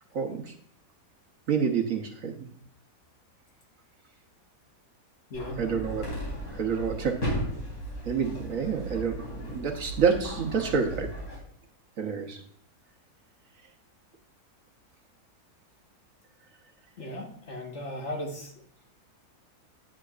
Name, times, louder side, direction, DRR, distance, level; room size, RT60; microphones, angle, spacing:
voice 1, 0.1-0.5 1.5-2.5 5.6-6.0 6.5-7.2 8.1-11.1 12.0-12.4, right 6 dB, 60° right, 4 dB, 1.3 m, -28 dB
sound 1, 5.3-11.4, equal, 70° left, 4.3 m, -36 dB
voice 2, 5.3-5.6 17.0-18.5, left 1 dB, 45° left, 1 dB, 1.6 m, -36 dB
9.7 x 9.7 x 2.4 m, 0.62 s
omnidirectional pair, 1.7 m